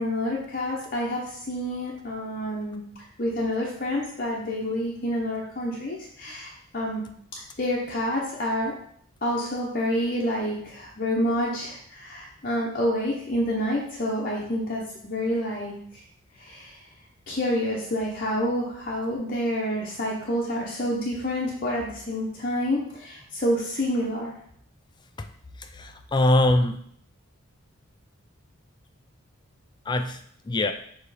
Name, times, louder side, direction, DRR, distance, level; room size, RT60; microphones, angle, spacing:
voice 1, 0.0-2.9 3.2-7.1 7.6-8.7 9.2-16.0 16.4-16.8 17.3-24.3, equal, 40° left, -4 dB, 0.9 m, -28 dB
voice 2, 25.6-26.8 29.9-30.7, left 1 dB, 20° left, 7 dB, 0.3 m, -23 dB
6.8 x 3.1 x 4.9 m, 0.67 s
head